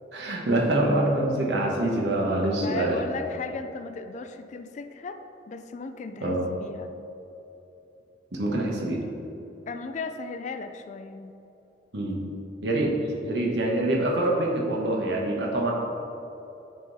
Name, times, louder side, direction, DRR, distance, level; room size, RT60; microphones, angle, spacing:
voice 1, 0.1-3.0 6.2-6.5 8.3-9.1 11.9-12.3 12.6-12.9 13.2-15.7, right 1 dB, 75° right, -2 dB, 1.2 m, -25 dB
voice 2, 2.6-5.2 5.5-6.9 9.7-11.3, left 4 dB, 40° left, 9 dB, 0.3 m, -36 dB
9.6 x 3.7 x 4.0 m, 3.0 s
head